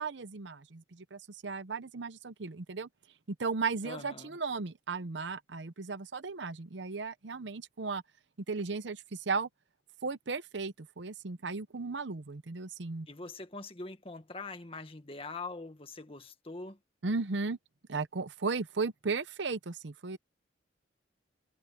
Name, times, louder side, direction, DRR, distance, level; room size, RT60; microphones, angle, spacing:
voice 1, 0.0-2.9 3.3-8.0 8.5-9.5 10.0-13.1 17.0-17.6 17.9-20.2, right 4 dB, 70° right, 0.8 m, -35 dB
voice 2, 3.8-4.4 13.1-16.8, left 3 dB, 30° left, 1.7 m, -43 dB
head